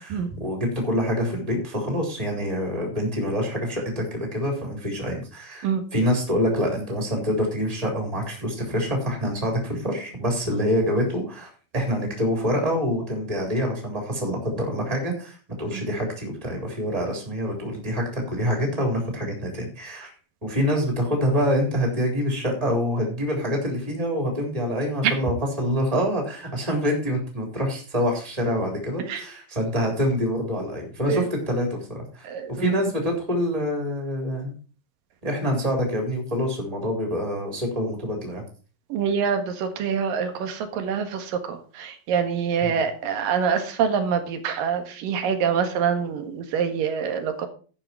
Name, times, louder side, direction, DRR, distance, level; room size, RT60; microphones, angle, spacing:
voice 1, 0.0-20.1 20.4-34.5 35.2-38.4 42.6-42.8, equal, 10° right, 1 dB, 3.7 m, -26 dB
voice 2, 32.2-32.7 38.9-47.5, right 7 dB, 85° right, 7 dB, 3.3 m, -25 dB
11.5 x 8.8 x 4.6 m, 0.38 s
omnidirectional pair, 3.8 m